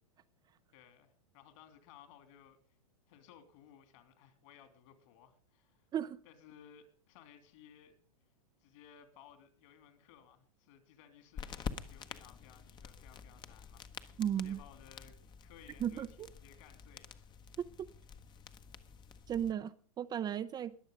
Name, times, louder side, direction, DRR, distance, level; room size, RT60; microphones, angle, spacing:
voice 1, 0.7-2.6 3.1-5.9 6.2-7.9 8.6-15.1 15.4-17.3, left 9 dB, 55° left, 3.0 m, -59 dB
sound 1, 11.4-19.5, left 7 dB, 25° left, 1.0 m, -48 dB
voice 2, 14.2-14.6 15.8-16.3 17.6-17.7 19.3-20.7, right 9 dB, 20° right, 0.6 m, -35 dB
21.0 x 7.1 x 5.3 m
hypercardioid pair, 115°, 19 cm